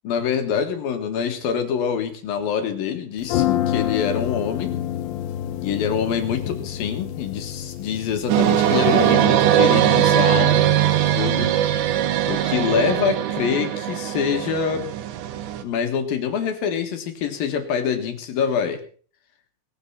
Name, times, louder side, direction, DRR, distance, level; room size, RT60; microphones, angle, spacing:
voice 1, 0.0-4.8 5.6-11.5 12.3-14.9 15.6-18.8, left 7 dB, 60° left, 7 dB, 3.2 m, -25 dB
sound 1, 3.2-9.1, left 12 dB, 85° left, 3.1 m, -28 dB
sound 2, 8.3-15.6, right 11 dB, 85° right, 3.5 m, -20 dB
19.0 x 9.5 x 5.8 m, 0.43 s
omnidirectional pair, 5.0 m